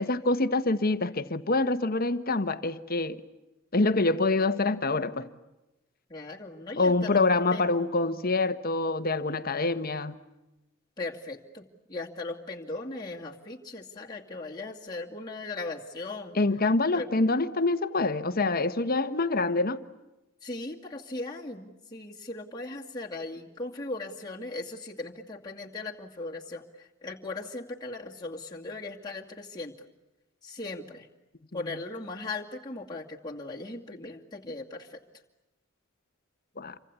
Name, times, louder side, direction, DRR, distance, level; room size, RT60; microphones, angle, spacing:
voice 1, 0.0-3.2 3.7-5.3 6.8-10.2 16.3-19.8 36.6-36.8, left 3 dB, 45° left, 1.3 m, -26 dB
voice 2, 6.1-7.2 7.5-7.8 11.0-16.4 16.9-17.2 20.4-29.7 30.4-31.1 31.5-35.0, left 2 dB, 20° left, 2.3 m, -38 dB
28.0 x 25.0 x 8.3 m
head